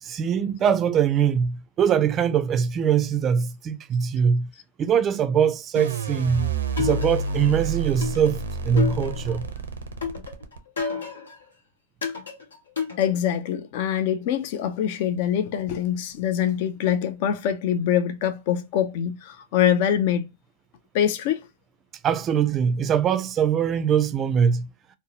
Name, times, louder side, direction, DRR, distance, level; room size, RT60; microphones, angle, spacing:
voice 1, 0.0-4.5 4.8-9.5 22.0-24.7, right 7 dB, 30° right, 0.3 m, -22 dB
sound 1, 5.7-10.8, right 4 dB, 85° right, 0.5 m, -29 dB
sound 2, 6.8-7.5 8.0-9.5 10.0-11.4 12.0-13.5, left 6 dB, 90° left, 0.9 m, -31 dB
voice 2, 13.0-20.3 20.9-21.4, left 9 dB, 55° left, 0.3 m, -24 dB
2.6 x 2.0 x 2.7 m
hypercardioid pair, 110°, 0 cm